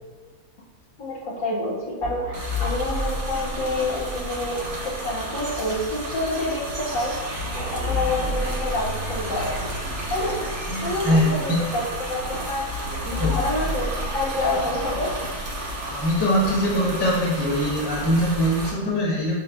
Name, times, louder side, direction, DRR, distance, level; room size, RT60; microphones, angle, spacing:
voice 1, 1.0-9.6 10.1-10.5 10.8-11.8 12.1-15.1, left 2 dB, 65° left, -4 dB, 1.0 m, -28 dB
sound 1, 2.0-4.7 5.7-5.8 6.6-6.7 7.1-10.1 10.9-11.0 11.9-12.0 12.4-12.5 12.7-15.4 16.4-16.5, left 2 dB, 20° right, 0.5 m, -31 dB
sound 2, 2.3-18.7, right 1 dB, 50° right, 1.0 m, -32 dB
voice 2, 10.7-11.6 13.1-13.4 15.9-19.4, equal, 20° left, -4 dB, 0.7 m, -22 dB
5.3 x 3.7 x 2.3 m, 1.4 s
omnidirectional pair, 1.8 m